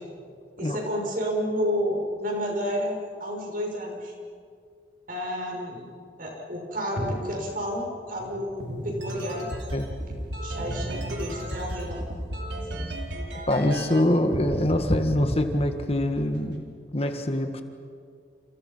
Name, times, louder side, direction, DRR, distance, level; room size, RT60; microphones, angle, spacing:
voice 1, 0.6-4.2 5.1-5.8 6.2-9.5 10.4-12.0 12.7-12.9, equal, 55° right, 0 dB, 6.4 m, -30 dB
sound 1, 8.6-14.0 14.3-14.8 15.1-16.6, right 1 dB, 80° right, 4.8 m, -34 dB
voice 2, 13.5-16.6 16.9-17.6, left 1 dB, 35° left, 6 dB, 1.7 m, -24 dB
29.5 x 29.5 x 5.7 m, 2.2 s
head